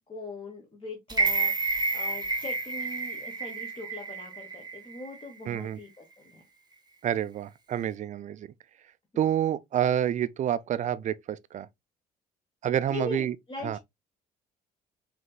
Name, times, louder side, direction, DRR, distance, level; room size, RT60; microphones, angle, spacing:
voice 1, 0.1-6.4 12.9-13.8, left 3 dB, 25° left, 1.2 m, -41 dB
sound 1, 1.1-5.2 5.6-5.7, right 3 dB, 20° right, 0.9 m, -30 dB
voice 2, 5.5-5.8 7.0-8.5 9.2-11.7 12.6-13.4 13.6-13.8, right 10 dB, 40° right, 0.4 m, -28 dB
5.0 x 2.8 x 2.2 m
hypercardioid pair, 50°, 20 cm